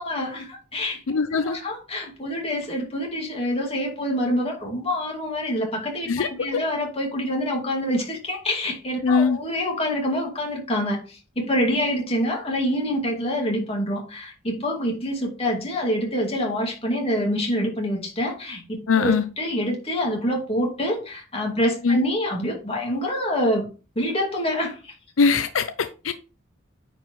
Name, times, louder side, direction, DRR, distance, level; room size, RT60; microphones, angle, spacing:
voice 1, 0.0-23.7 24.0-24.9, equal, 30° left, 2.3 m, -26 dB
voice 2, 1.1-1.6 6.1-6.6 9.0-9.4 18.9-19.2 21.8-22.0 25.2-26.1, left 5 dB, 85° left, 0.5 m, -21 dB
9.6 x 4.4 x 3.2 m
head